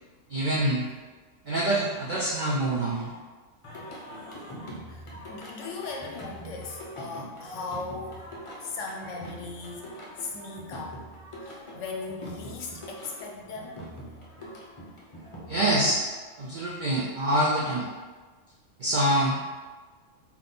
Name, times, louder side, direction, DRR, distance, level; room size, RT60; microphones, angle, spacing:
voice 1, 0.3-0.8 1.5-3.1 15.5-16.0 16.4-17.9 18.8-19.4, right 1 dB, 75° right, -4 dB, 0.4 m, -25 dB
Singing, 3.6-16.0, equal, 35° left, 0.5 m, -43 dB
voice 2, 4.9-8.3 8.6-11.0 11.4-13.8, left 4 dB, 65° left, 0 dB, 0.9 m, -38 dB
3.7 x 2.9 x 3.8 m, 1.4 s
omnidirectional pair, 1.5 m